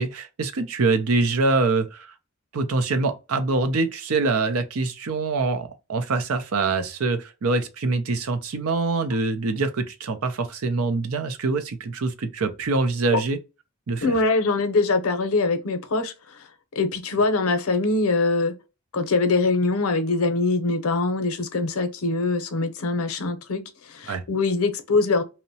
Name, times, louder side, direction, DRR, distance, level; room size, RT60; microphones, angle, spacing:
voice 1, 0.0-2.1 2.5-13.4 13.9-14.1 24.1-24.2, right 3 dB, 80° right, 0.6 m, -24 dB
voice 2, 14.0-16.1 16.7-18.6 18.9-23.6 23.9-25.2, left 3 dB, 80° left, 0.6 m, -23 dB
2.8 x 2.1 x 2.7 m
head